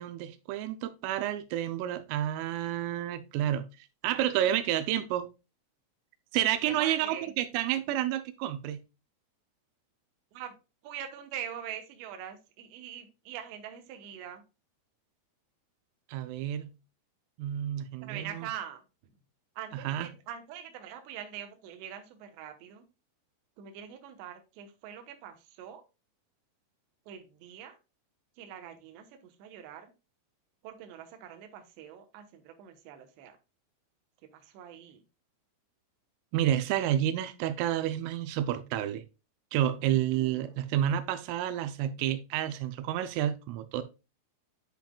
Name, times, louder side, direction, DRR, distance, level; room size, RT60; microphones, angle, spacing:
voice 1, 0.0-5.3 6.3-8.8 16.1-16.7 17.4-18.5 19.7-20.1 36.3-39.0 39.5-43.8, right 11 dB, 90° right, 3.3 m, -30 dB
voice 2, 6.6-7.3 10.3-10.5 10.8-14.4 18.0-18.8 19.6-22.8 23.6-25.8 27.1-27.8 28.4-29.9 30.6-33.4 34.3-35.0 36.7-36.8 40.1-40.6, right 9 dB, 70° right, 3.1 m, -43 dB
10.0 x 5.8 x 2.3 m
omnidirectional pair, 5.7 m